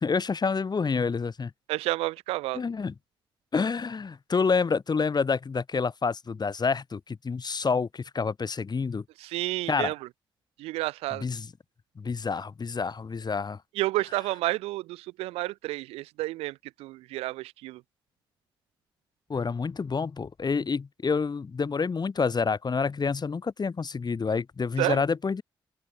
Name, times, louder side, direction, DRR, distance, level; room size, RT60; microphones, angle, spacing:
voice 1, 0.0-1.5 2.6-2.9 3.5-9.0 9.7-9.9 11.2-11.5 12.0-13.6 19.3-25.4, left 5 dB, 45° left, 2.1 m, -28 dB
voice 2, 1.7-2.6 9.2-10.1 10.6-11.2 13.7-17.8 24.8-25.0, right 18 dB, 85° right, 1.3 m, -30 dB
open air
hypercardioid pair, 40°, 10 cm